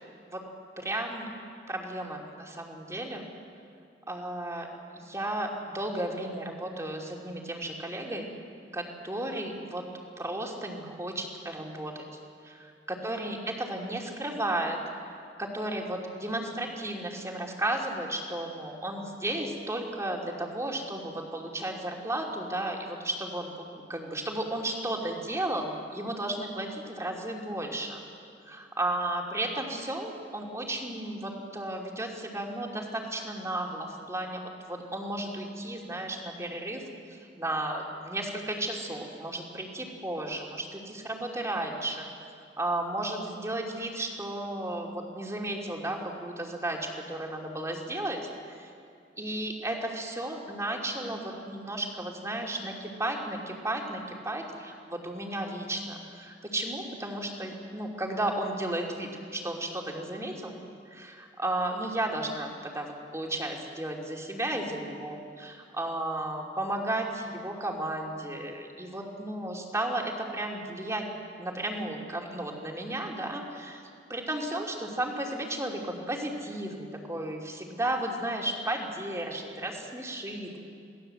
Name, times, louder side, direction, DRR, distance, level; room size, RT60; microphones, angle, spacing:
voice 1, 0.8-1.3 1.7-3.3 4.1-4.7 5.0-8.3 8.7-9.9 10.2-12.1 12.4-14.8 15.4-28.0 28.5-36.8 37.1-42.1 42.6-48.2 48.5-48.7 49.2-60.6 60.9-62.9 63.1-71.1 71.4-73.8 74.1-80.6, right 1 dB, 15° right, 0 dB, 2.9 m, -34 dB
27.5 x 19.0 x 7.9 m, 2.5 s
head